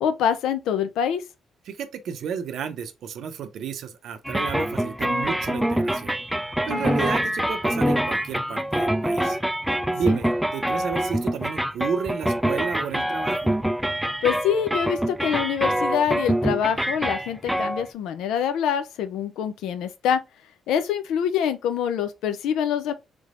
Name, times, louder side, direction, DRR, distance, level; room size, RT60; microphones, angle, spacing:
voice 1, 0.0-1.2 6.7-6.9 14.2-20.2 20.7-22.9, left 8 dB, 90° left, 0.5 m, -25 dB
voice 2, 1.7-6.2 6.6-9.4 9.9-13.5, right 7 dB, 70° right, 0.6 m, -32 dB
sound 1, 4.2-17.9, right 1 dB, 5° right, 0.3 m, -25 dB
3.4 x 3.3 x 2.5 m
cardioid pair, 90°, 0 cm